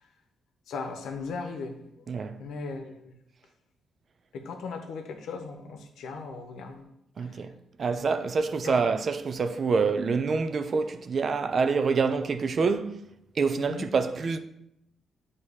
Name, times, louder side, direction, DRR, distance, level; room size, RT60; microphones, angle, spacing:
voice 1, 0.7-1.8 2.4-3.1 4.3-6.9 7.2-7.3 8.6-8.8 13.6-13.9, left 4 dB, 80° left, 0.9 m, -37 dB
voice 2, 2.1-2.4 7.2-7.5 7.8-13.0 13.4-14.4, right 5 dB, 45° right, 0.5 m, -26 dB
8.4 x 2.9 x 4.8 m
cardioid pair, 100°, 0 cm